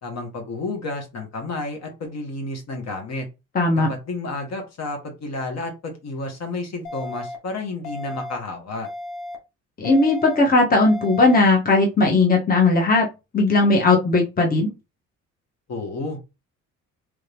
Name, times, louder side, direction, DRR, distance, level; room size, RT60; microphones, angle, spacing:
voice 1, 0.0-3.3 3.7-8.9 15.7-16.2, left 2 dB, 60° left, 3 dB, 1.4 m, -31 dB
voice 2, 3.5-3.9 9.8-13.1 13.3-14.7, left 3 dB, 30° left, 1 dB, 1.0 m, -17 dB
sound 1, 6.8-7.3 7.8-8.3 8.8-9.3 9.8-10.3 10.8-11.3, left 1 dB, 90° left, 1.1 m, -34 dB
3.4 x 2.7 x 3.4 m, 0.26 s
cardioid pair, 90°, 30 cm